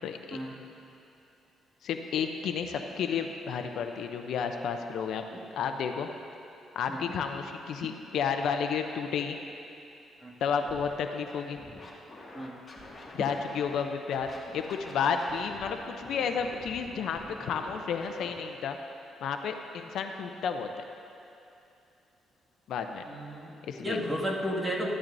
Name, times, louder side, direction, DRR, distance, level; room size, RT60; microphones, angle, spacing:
voice 1, 0.0-0.4 1.8-5.2 5.5-6.1 6.8-9.4 10.4-11.6 13.1-14.3 14.5-18.8 19.2-20.7 22.7-23.0 23.7-24.0, left 6 dB, 75° left, 5 dB, 0.6 m, -31 dB
Scratching (performance technique), 10.6-10.9 11.3-13.8 14.1-18.3, left 2 dB, 30° left, 2.1 m, -47 dB
voice 2, 23.0-23.5 23.8-24.9, equal, 15° right, -4 dB, 2.1 m, -33 dB
15.0 x 12.0 x 2.7 m, 2.7 s
cardioid pair, 90°, 0 cm